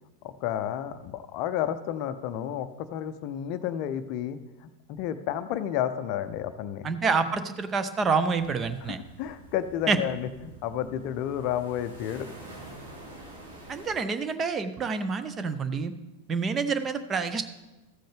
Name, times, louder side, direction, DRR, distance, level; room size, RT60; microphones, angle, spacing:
voice 1, 0.2-4.4 4.9-6.9 8.8-12.3, left 10 dB, 45° left, 11 dB, 0.5 m, -31 dB
voice 2, 6.8-9.0 9.9-10.0 13.7-15.9 16.3-17.4, right 4 dB, 20° right, 11 dB, 0.6 m, -27 dB
sound 1, 8.4-14.0, right 1 dB, 70° right, 2.5 m, -47 dB
14.5 x 7.7 x 3.4 m, 1.0 s
figure-of-eight pair, 90°, 0 cm